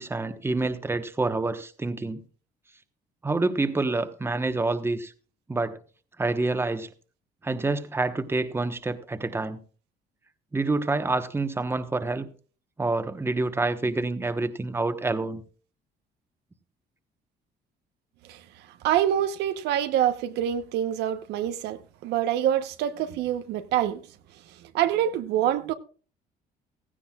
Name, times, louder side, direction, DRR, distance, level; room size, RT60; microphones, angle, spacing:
voice 1, 0.0-2.2 3.2-5.1 5.5-5.8 6.2-6.9 7.4-9.6 10.5-12.3 12.8-15.4, right 3 dB, 15° right, 1.1 m, -27 dB
voice 2, 18.8-24.0 24.7-25.7, right 11 dB, 85° right, 1.0 m, -26 dB
16.0 x 15.0 x 2.4 m
cardioid pair, 110°, 17 cm